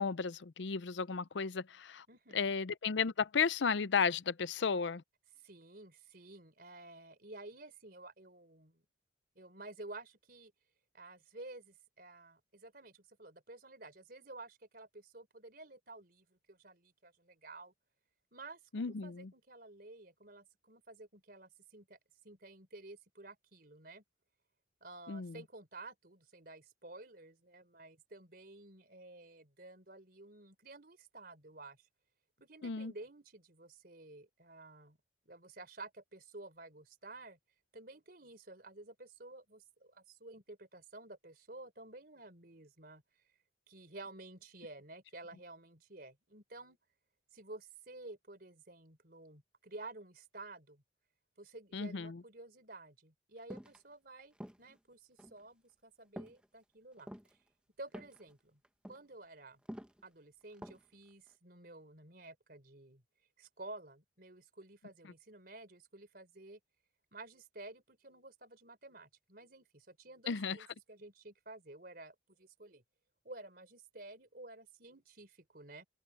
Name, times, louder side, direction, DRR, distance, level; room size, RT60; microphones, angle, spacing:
voice 1, 0.0-2.0 2.3-5.0 18.7-19.3 25.1-25.4 32.6-32.9 51.7-52.2 70.3-70.6, left 5 dB, 70° left, 0.6 m, -34 dB
voice 2, 2.1-2.5 5.4-8.8 9.3-10.5 10.9-17.7 18.3-22.0 22.2-24.0 24.8-31.8 32.4-35.0 35.2-37.4 37.7-43.0 43.7-46.8 47.3-50.8 51.4-57.1 57.8-58.6 58.9-59.6 60.0-63.0 63.4-66.6 67.1-72.8 73.2-75.9, right 2 dB, 50° right, 4.5 m, -52 dB
sound 1, 53.5-53.8 54.3-54.8 55.2-55.4 56.2-56.5 56.9-57.3 57.9-58.3 58.6-59.0 59.7-60.0 60.5-60.9 61.3-61.4, equal, 5° right, 1.3 m, -48 dB
open air
head